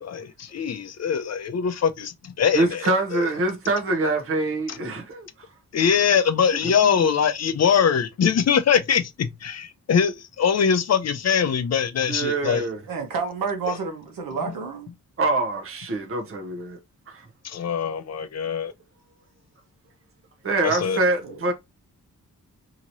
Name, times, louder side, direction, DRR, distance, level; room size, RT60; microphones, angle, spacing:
voice 1, 0.0-3.3 4.7-4.8 5.7-12.6 13.7-13.8 17.4-18.7 20.6-21.0, left 7 dB, 50° left, 0.5 m, -22 dB
voice 2, 2.5-5.3 12.1-12.8 15.2-16.8 17.1-17.3 20.4-21.5, right 2 dB, 40° right, 0.8 m, -24 dB
voice 3, 12.9-14.9 21.2-21.5, right 5 dB, 85° right, 1.0 m, -30 dB
2.9 x 2.9 x 2.6 m
wide cardioid pair, 120°, 33 cm